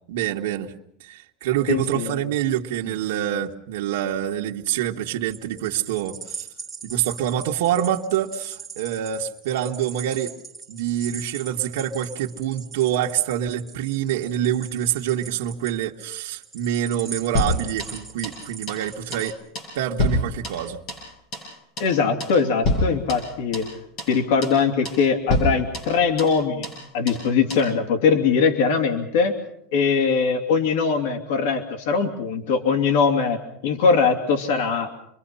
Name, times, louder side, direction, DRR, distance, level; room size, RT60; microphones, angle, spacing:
voice 1, 0.1-0.7 1.0-6.5 6.8-10.3 10.7-19.3 19.7-20.8, right 10 dB, 75° right, 0 dB, 1.6 m, -26 dB
voice 2, 1.7-2.1 21.8-23.7 24.1-26.7 26.9-29.3 29.7-35.0, left 5 dB, 65° left, 4 dB, 2.8 m, -21 dB
sound 1, 5.3-19.3, right 5 dB, 5° right, 2.7 m, -40 dB
sound 2, 17.3-18.4 18.7-18.9 19.1-19.3 19.5-21.1 21.3-21.5 21.8-21.9 22.2-22.4 22.6-23.7 24.0-24.1 24.4-24.6 24.8-25.0 25.3-26.4 26.6-26.8 27.1-27.2 27.5-27.7, left 1 dB, 35° left, 7.0 m, -27 dB
28.0 x 22.5 x 5.6 m, 0.71 s
supercardioid pair, 180°, 0 cm